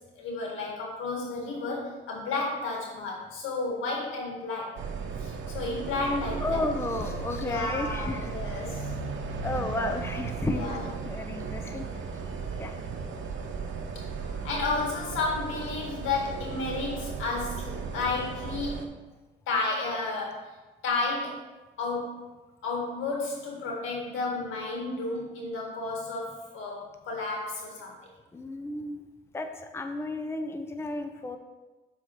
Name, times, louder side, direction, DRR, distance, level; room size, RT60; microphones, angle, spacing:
voice 1, 0.2-4.7 5.2-6.6 7.4-8.9 10.5-10.8 14.4-18.9 19.5-20.5 20.8-21.4 21.8-22.2 22.6-27.9, left 3 dB, 85° left, -1 dB, 1.7 m, -32 dB
sound 1, 4.8-18.9, right 5 dB, 75° right, 0.8 m, -36 dB
voice 2, 6.4-8.3 9.4-10.7 11.0-11.8 12.2-12.8 28.3-29.0 29.3-31.4, left 2 dB, 10° left, 5 dB, 0.6 m, -33 dB
5.9 x 4.6 x 5.0 m, 1.2 s
cardioid pair, 90°, 20 cm